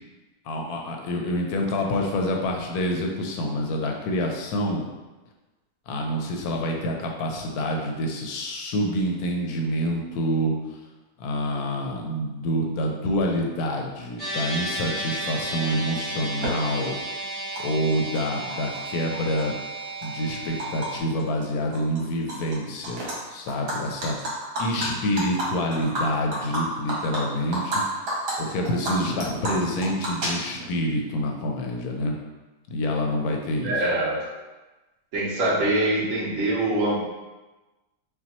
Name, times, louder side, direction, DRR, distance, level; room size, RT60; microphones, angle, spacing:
voice 1, 0.5-4.8 5.9-10.5 11.2-17.0 17.6-19.5 20.0-23.0 23.3-24.2 24.6-27.8 28.4-32.1 32.7-33.8, equal, 75° left, 1 dB, 1.0 m, -27 dB
sound 1, 14.2-21.0, right 1 dB, 15° left, 0.8 m, -33 dB
Animal, 16.4-16.5 17.6-17.7 17.9-18.8 19.1-20.9 21.2-21.4 21.7-22.6 22.8-23.1 23.5-27.8 28.1-28.3 28.7-30.8, right 1 dB, 80° right, 1.7 m, -30 dB
voice 2, 33.6-34.2 35.1-37.0, right 1 dB, 55° right, -7 dB, 1.3 m, -24 dB
5.6 x 2.2 x 2.9 m, 1.1 s
omnidirectional pair, 1.7 m